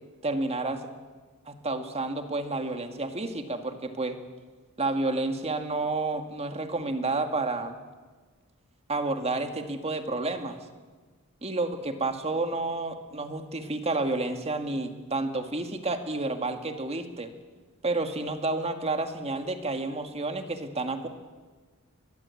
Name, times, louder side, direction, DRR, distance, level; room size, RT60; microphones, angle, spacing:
voice 1, 0.2-0.8 1.5-4.2 4.8-7.8 8.9-10.6 11.4-17.3 17.8-21.1, right 2 dB, 30° right, 6 dB, 2.0 m, -30 dB
23.5 x 21.5 x 8.5 m, 1.4 s
head